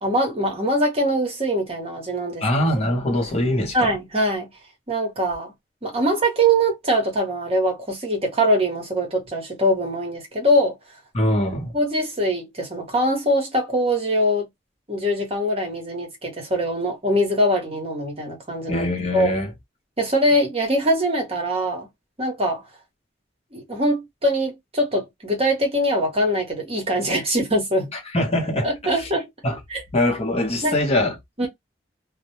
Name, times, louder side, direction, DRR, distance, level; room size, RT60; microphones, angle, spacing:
voice 1, 0.0-2.4 3.7-4.5 4.9-5.5 5.8-10.8 11.7-14.5 14.9-18.9 19.1-19.3 20.0-21.9 22.2-22.6 23.5-27.9 28.6-29.3 29.7-29.8 30.6-30.8 31.4-31.5, equal, 35° right, 0.9 m, -22 dB
voice 2, 2.4-3.9 11.1-11.8 18.7-19.5 27.9-28.7 29.4-29.6 29.9-31.5, left 1 dB, 35° left, 0.8 m, -23 dB
2.2 x 2.1 x 2.8 m
head